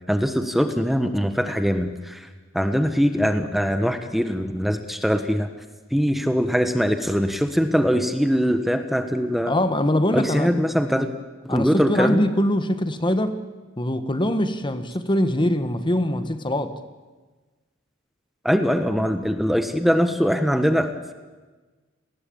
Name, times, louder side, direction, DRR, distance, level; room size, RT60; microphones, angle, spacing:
voice 1, 0.1-2.3 2.5-5.5 5.9-9.5 10.1-11.1 11.4-12.2 18.4-21.1, equal, ahead, 8 dB, 1.3 m, -22 dB
voice 2, 9.5-10.5 11.5-13.4 13.8-16.7, left 1 dB, 25° left, 10 dB, 1.5 m, -23 dB
29.5 x 19.5 x 8.7 m, 1.3 s
head